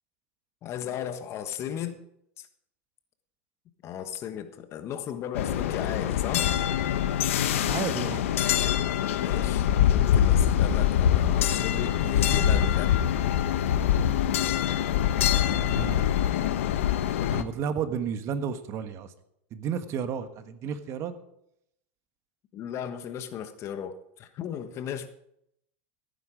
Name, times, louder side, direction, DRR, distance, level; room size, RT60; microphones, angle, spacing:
voice 1, 0.6-2.0 2.4-2.5 3.8-6.5 9.1-13.0 22.5-25.1, left 9 dB, 40° left, 10 dB, 1.3 m, -36 dB
sound 1, 5.3-17.4, left 10 dB, 85° left, 1.0 m, -24 dB
voice 2, 7.5-8.2 15.5-16.0 17.3-19.1 19.5-21.1, right 7 dB, 45° right, 10 dB, 1.3 m, -32 dB
15.5 x 9.2 x 5.0 m, 0.77 s
supercardioid pair, 120°, 7 cm